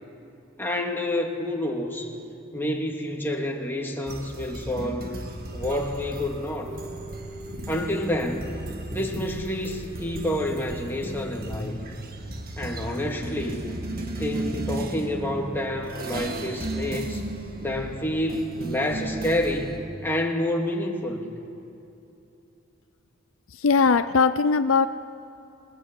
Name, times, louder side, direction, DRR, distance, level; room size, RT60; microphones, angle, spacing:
voice 1, 0.6-2.1 2.5-5.1 5.5-6.7 7.7-8.6 8.9-11.8 12.6-13.7 14.2-17.2 17.6-21.2, left 1 dB, 10° left, 0 dB, 2.6 m, -28 dB
sound 1, 4.1-19.8, right 1 dB, 45° right, 1.7 m, -35 dB
sound 2, 5.2-19.9, right 3 dB, 35° left, 3.8 m, -44 dB
voice 2, 23.5-24.9, left 4 dB, 70° left, 11 dB, 0.6 m, -20 dB
27.0 x 21.0 x 8.5 m, 2.8 s
head